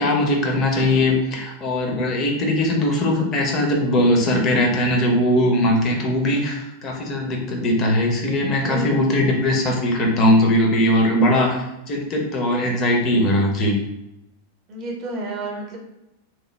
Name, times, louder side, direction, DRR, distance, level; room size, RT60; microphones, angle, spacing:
voice 1, 0.0-13.8, left 1 dB, 30° left, 0 dB, 0.7 m, -20 dB
voice 2, 8.6-9.3 14.7-15.8, right 2 dB, 35° right, 0 dB, 0.8 m, -30 dB
3.0 x 2.2 x 3.2 m, 0.89 s
figure-of-eight pair, 90°, 0 cm